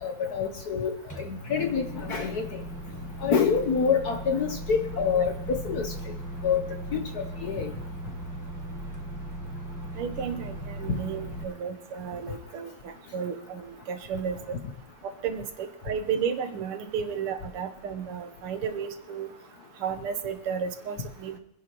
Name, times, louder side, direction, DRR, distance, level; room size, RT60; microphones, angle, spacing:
voice 1, 0.0-2.6 3.2-5.9 6.4-6.6 6.9-7.7, left 6 dB, 60° left, 5 dB, 1.1 m, -27 dB
Microwave oven, 1.1-11.4, right 1 dB, 15° left, 0.6 m, -38 dB
voice 2, 10.0-14.6 15.0-19.3 19.8-21.4, right 7 dB, 85° right, 7 dB, 2.0 m, -33 dB
24.0 x 10.5 x 3.0 m, 0.92 s
omnidirectional pair, 2.4 m